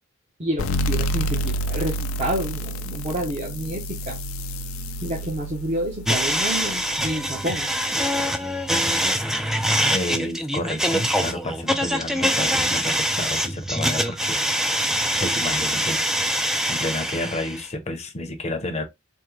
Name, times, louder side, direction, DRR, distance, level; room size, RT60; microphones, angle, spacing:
voice 1, 0.4-4.2 5.0-7.7, right 1 dB, 30° right, 0.8 m, -29 dB
sound 1, 0.6-7.9, equal, 80° left, 0.4 m, -29 dB
sound 2, 6.1-17.6, equal, ahead, 0.3 m, -24 dB
voice 2, 9.9-14.9 15.2-16.0 16.7-18.8, left 1 dB, 30° left, 0.7 m, -30 dB
3.5 x 2.1 x 3.0 m
head